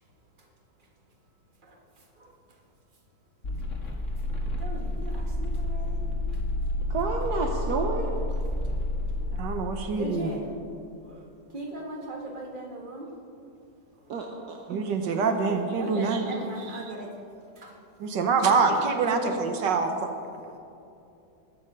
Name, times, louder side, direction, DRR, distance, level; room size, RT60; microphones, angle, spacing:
sound 1, 3.4-9.4, left 1 dB, 45° left, 1.9 m, -30 dB
voice 1, 4.6-6.0 10.0-10.5 11.0-11.2 11.5-13.1 14.8-15.2 15.8-17.1 17.6-17.7, right 1 dB, 30° right, 0 dB, 1.8 m, -39 dB
voice 2, 6.9-8.1 14.1-14.8, right 4 dB, 65° right, 1 dB, 1.4 m, -30 dB
voice 3, 9.3-10.4 14.7-16.3 16.6-16.7 18.0-20.1, right 4 dB, 90° right, 5 dB, 1.7 m, -25 dB
20.5 x 7.2 x 5.5 m, 2.6 s
omnidirectional pair, 1.8 m